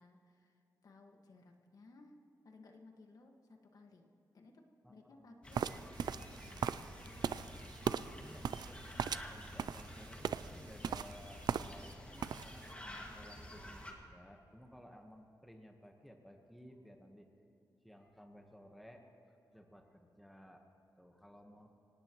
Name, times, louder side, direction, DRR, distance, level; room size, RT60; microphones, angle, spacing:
voice 1, 0.0-2.2 2.4-4.1 4.3-6.9, left 2 dB, 60° left, 3 dB, 1.7 m, -60 dB
voice 2, 4.8-5.4 7.7-17.3 17.8-20.6 21.0-21.7, equal, ahead, 3 dB, 1.2 m, -57 dB
sound 1, 5.4-13.9, left 1 dB, 15° left, 2.0 m, -50 dB
sound 2, 5.5-11.9 12.2-12.7, right 8 dB, 75° right, 0.4 m, -39 dB
25.5 x 18.5 x 3.1 m, 2.9 s
wide cardioid pair, 155°, 7 cm